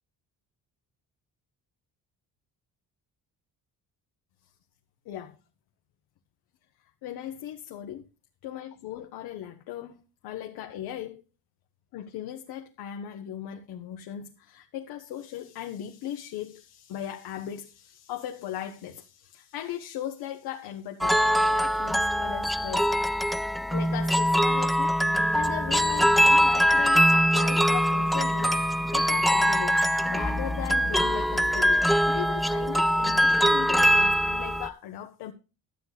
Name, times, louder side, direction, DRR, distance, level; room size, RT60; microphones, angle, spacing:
voice 1, 5.0-5.4 7.0-8.1 8.4-11.2 11.9-22.9 23.7-29.8 30.1-35.3, left 11 dB, 85° left, 1.1 m, -38 dB
sound 1, 21.0-34.7, equal, ahead, 0.4 m, -23 dB
12.5 x 8.1 x 4.0 m
cardioid pair, 120°, 37 cm